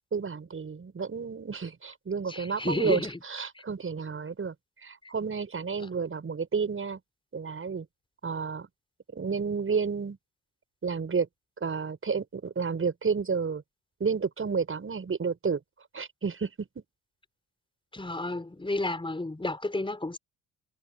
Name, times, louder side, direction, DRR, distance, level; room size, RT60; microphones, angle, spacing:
voice 1, 0.1-4.5 4.8-7.0 7.3-7.9 8.2-8.7 9.1-10.2 10.8-11.3 11.6-13.6 14.0-15.6 15.9-16.8, right 5 dB, 35° right, 7.3 m, -31 dB
voice 2, 2.3-3.2 17.9-20.2, left 2 dB, 15° left, 4.6 m, -31 dB
hypercardioid pair, 50°, 35 cm